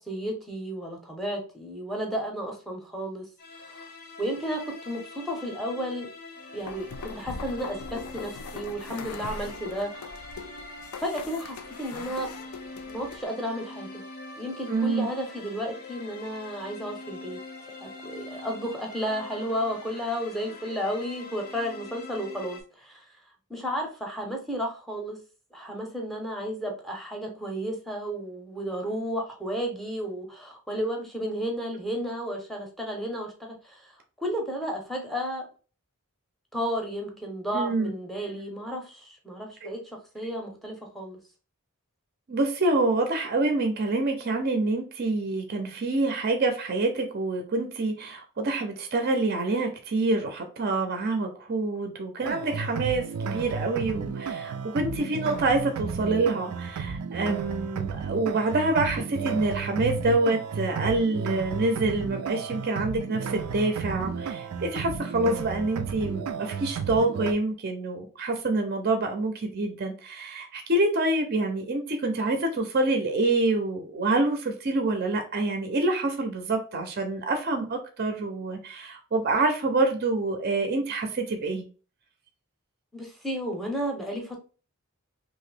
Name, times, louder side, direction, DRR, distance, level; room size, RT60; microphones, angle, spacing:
voice 1, 0.1-3.3 3.7-3.9 4.2-6.1 6.5-10.1 11.0-12.4 12.9-14.1 14.4-17.4 17.8-23.0 23.5-25.2 25.5-33.9 34.2-35.5 36.5-41.2 82.9-84.4, equal, ahead, 0 dB, 0.7 m, -33 dB
sound 1, 3.4-22.6, left 3 dB, 45° left, 0.6 m, -44 dB
sound 2, 6.6-13.2, left 4 dB, 90° left, 0.4 m, -41 dB
voice 2, 14.7-15.1 37.5-37.9 39.6-39.7 42.3-81.7, right 2 dB, 45° right, 5 dB, 0.5 m, -26 dB
sound 3, 52.2-67.3, right 5 dB, 90° right, 0.4 m, -33 dB
2.8 x 2.6 x 3.2 m, 0.36 s
head